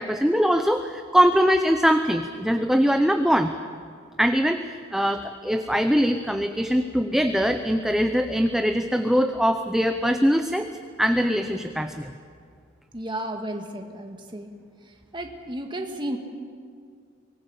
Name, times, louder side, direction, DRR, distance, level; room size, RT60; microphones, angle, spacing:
voice 1, 0.0-3.5 4.2-10.7 11.0-12.1, equal, ahead, 7 dB, 0.6 m, -22 dB
voice 2, 12.9-14.5 15.1-16.2, right 1 dB, 25° right, 3 dB, 1.7 m, -33 dB
24.5 x 19.0 x 7.0 m, 2.2 s
head